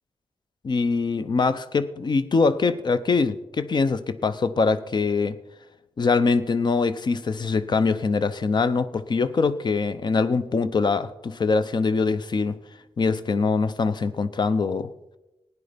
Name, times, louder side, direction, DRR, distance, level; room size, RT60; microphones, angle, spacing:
voice 1, 0.6-5.4 6.0-12.6 13.0-14.9, left 4 dB, 45° left, 13 dB, 0.7 m, -23 dB
16.5 x 9.7 x 5.1 m, 0.96 s
wide cardioid pair, 160°, 11 cm